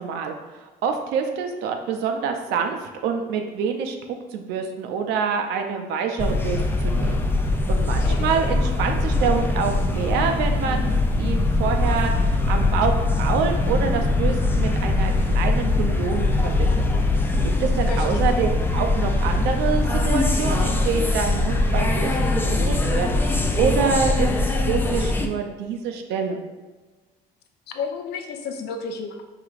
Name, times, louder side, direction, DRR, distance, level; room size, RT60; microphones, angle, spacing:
voice 1, 0.0-4.0 4.3-10.9 11.2-16.8 17.1-26.4, right 6 dB, 90° right, 5 dB, 0.5 m, -26 dB
sound 1, 6.2-25.3, left 2 dB, 10° left, 0.3 m, -22 dB
voice 2, 17.9-18.5 27.7-29.2, left 5 dB, 75° left, 5 dB, 0.5 m, -32 dB
4.8 x 2.9 x 2.4 m, 1.3 s
cardioid pair, 110°, 17 cm